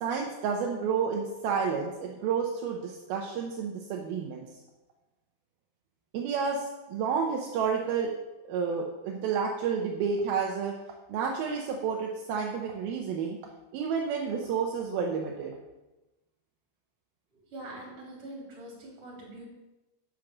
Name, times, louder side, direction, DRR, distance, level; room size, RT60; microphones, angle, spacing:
voice 1, 0.0-4.4 6.1-8.1 8.4-10.7 11.1-13.4 13.7-15.5, right 6 dB, 75° right, 0 dB, 2.7 m, -30 dB
voice 2, 17.5-19.5, right 1 dB, 35° right, -3 dB, 4.1 m, -43 dB
9.0 x 6.4 x 7.3 m, 1.0 s
omnidirectional pair, 4.5 m